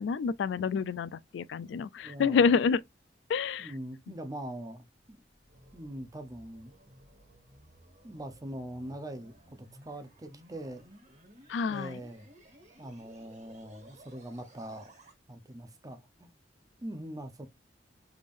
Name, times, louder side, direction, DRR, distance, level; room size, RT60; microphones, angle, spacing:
voice 1, 0.0-2.8 3.3-3.7 11.5-12.0, left 5 dB, 75° left, 0.3 m, -28 dB
voice 2, 2.0-2.5 3.6-5.2 5.7-6.7 8.0-10.9 11.7-12.3 12.8-14.9 15.3-16.3 16.8-17.5, right 1 dB, 20° right, 0.6 m, -42 dB
sound 1, 5.0-15.1, right 1 dB, 45° right, 1.6 m, -57 dB
3.5 x 3.5 x 2.4 m
head